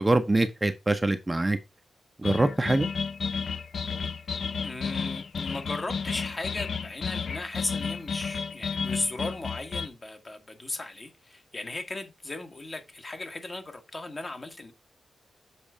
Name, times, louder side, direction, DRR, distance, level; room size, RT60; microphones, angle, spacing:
voice 1, 0.0-1.6 2.2-2.9, right 2 dB, 20° right, 0.8 m, -24 dB
sound 1, 2.2-9.9, left 5 dB, 65° left, 0.6 m, -32 dB
voice 2, 4.6-14.7, left 2 dB, 35° left, 1.5 m, -36 dB
7.3 x 4.0 x 4.9 m
cardioid pair, 70°, 0 cm